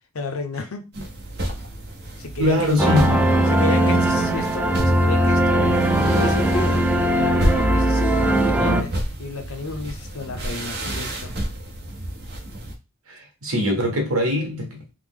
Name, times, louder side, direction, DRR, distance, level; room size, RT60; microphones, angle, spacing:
voice 1, 0.1-0.9 2.2-3.0 3.5-5.8 6.1-6.8 7.1-11.3, left 3 dB, 70° left, 0.6 m, -32 dB
sound 1, 0.9-12.7, right 1 dB, 50° right, 0.7 m, -31 dB
voice 2, 2.4-3.5 13.1-14.9, left 1 dB, 65° right, 1.0 m, -23 dB
sound 2, 2.8-8.8, right 1 dB, 5° right, 0.4 m, -19 dB
3.2 x 2.0 x 3.5 m
head